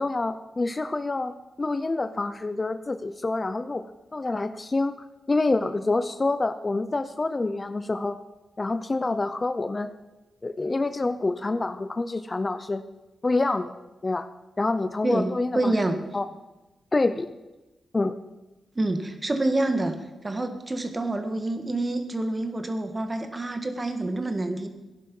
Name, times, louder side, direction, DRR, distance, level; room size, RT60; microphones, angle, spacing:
voice 1, 0.0-1.3 1.6-3.8 4.1-8.2 8.6-9.9 10.4-12.8 13.2-13.7 14.0-14.3 14.6-15.7 16.1-16.3 16.9-17.4 17.9-18.2, left 3 dB, 30° left, 11 dB, 0.7 m, -27 dB
voice 2, 15.0-16.0 18.7-19.9 20.2-24.7, right 2 dB, 25° right, 7 dB, 1.8 m, -27 dB
16.5 x 11.0 x 5.5 m, 1.1 s
cardioid pair, 90°, 0 cm